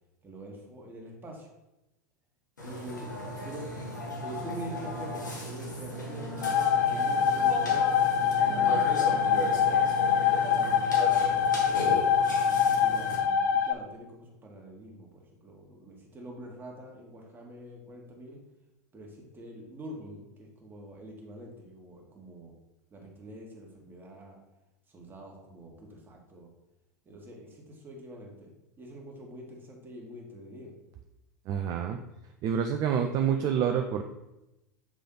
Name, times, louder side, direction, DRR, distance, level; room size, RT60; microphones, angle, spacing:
voice 1, 0.2-1.5 2.6-3.1 3.4-3.6 4.2-9.8 10.2-11.8 12.5-15.1 15.4-18.4 18.9-19.1 19.3-22.5 22.9-24.4 24.9-26.5 27.0-28.5 28.8-30.7, right 1 dB, 20° right, 0 dB, 1.6 m, -45 dB
Burping eructation, 2.6-13.2, equal, 90° left, 1.4 m, -36 dB
sound 1, 6.4-13.7, left 7 dB, 70° left, 0.5 m, -24 dB
voice 2, 31.5-32.0 32.4-34.0, right 8 dB, 45° right, 4 dB, 0.5 m, -27 dB
7.3 x 3.3 x 3.8 m, 0.94 s
hypercardioid pair, 90°, 10 cm